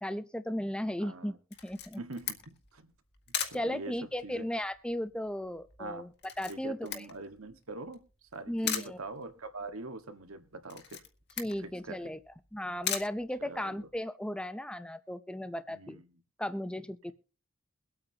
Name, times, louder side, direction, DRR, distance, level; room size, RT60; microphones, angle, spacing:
voice 1, 0.0-1.4 1.6-2.0 3.5-6.1 6.4-7.1 8.5-9.0 11.4-12.2 12.5-16.0 16.4-17.1, left 1 dB, 5° left, 0.6 m, -36 dB
voice 2, 1.0-1.4 2.0-2.9 3.5-4.5 5.8-6.1 6.5-11.0 11.6-12.0 13.4-13.9 15.7-16.0, right 2 dB, 85° right, 1.6 m, -44 dB
Camera, 1.5-14.0, left 9 dB, 55° left, 2.0 m, -41 dB
23.0 x 8.8 x 2.9 m
head